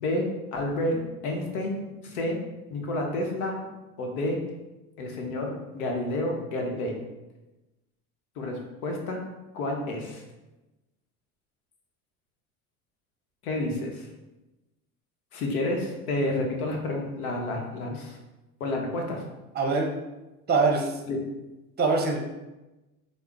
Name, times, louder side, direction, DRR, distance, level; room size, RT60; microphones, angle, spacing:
voice 1, 0.0-2.4 2.7-3.6 4.0-4.4 5.0-7.0 8.4-9.2 9.5-10.2 13.4-14.1 15.3-18.2 18.6-19.2 21.1-21.2, left 1 dB, 85° left, 1 dB, 0.8 m, -30 dB
voice 2, 19.5-19.9 20.5-20.9 21.8-22.2, right 4 dB, 25° right, 2 dB, 0.6 m, -23 dB
3.3 x 2.0 x 3.7 m, 1.0 s
hypercardioid pair, 80°, 43 cm